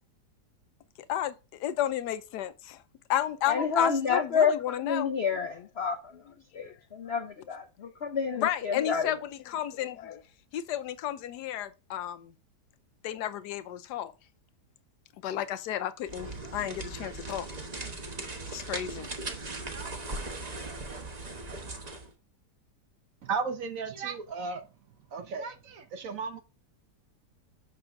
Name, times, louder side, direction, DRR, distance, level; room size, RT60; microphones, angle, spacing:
voice 1, 1.6-2.8 3.1-5.1 6.6-6.7 8.4-9.2 9.5-10.2 10.5-12.3 13.0-14.1 15.2-17.5 18.5-19.1, left 11 dB, 75° left, 1.2 m, -32 dB
voice 2, 3.5-6.2 6.5-9.1, left 6 dB, 60° left, 0.6 m, -29 dB
sound 1, 16.0-22.1, right 2 dB, 30° right, 0.9 m, -38 dB
voice 3, 23.2-24.7 25.1-26.4, right 5 dB, 60° right, 1.1 m, -34 dB
6.2 x 3.6 x 5.7 m
omnidirectional pair, 1.8 m